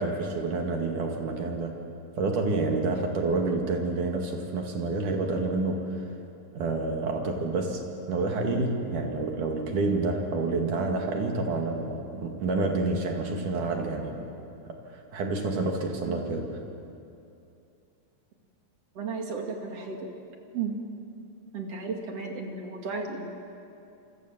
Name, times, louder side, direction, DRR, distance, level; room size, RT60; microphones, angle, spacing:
voice 1, 0.0-1.7 2.2-6.1 6.5-7.8 8.1-14.3 14.7-16.5, right 3 dB, 65° right, 2 dB, 3.5 m, -28 dB
voice 2, 18.9-20.1 20.5-20.8 21.5-23.3, right 4 dB, 50° right, 2 dB, 3.1 m, -34 dB
27.5 x 25.0 x 7.4 m, 2.7 s
omnidirectional pair, 4.0 m